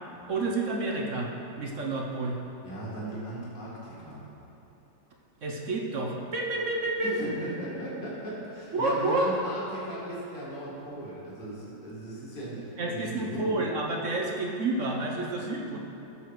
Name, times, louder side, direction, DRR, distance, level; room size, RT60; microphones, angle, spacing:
voice 1, 0.3-1.3 1.6-2.4 5.4-7.2 8.7-9.3 12.8-15.8, right 2 dB, 50° right, 0 dB, 1.1 m, -29 dB
voice 2, 2.6-4.3 7.0-13.6, right 1 dB, 25° left, -7 dB, 2.4 m, -37 dB
14.0 x 7.1 x 4.7 m, 2.9 s
omnidirectional pair, 2.1 m